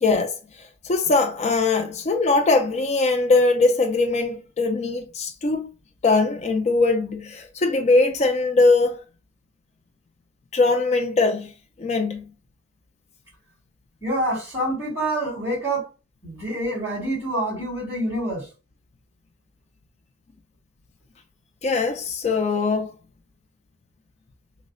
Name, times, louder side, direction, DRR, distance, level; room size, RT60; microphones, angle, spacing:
voice 1, 0.0-5.7 6.0-9.0 10.5-11.5 11.8-12.2 21.6-22.9, left 3 dB, 35° left, 0.4 m, -21 dB
voice 2, 14.0-15.9 16.2-18.5, right 1 dB, 10° right, 2.0 m, -26 dB
3.1 x 2.1 x 3.7 m
head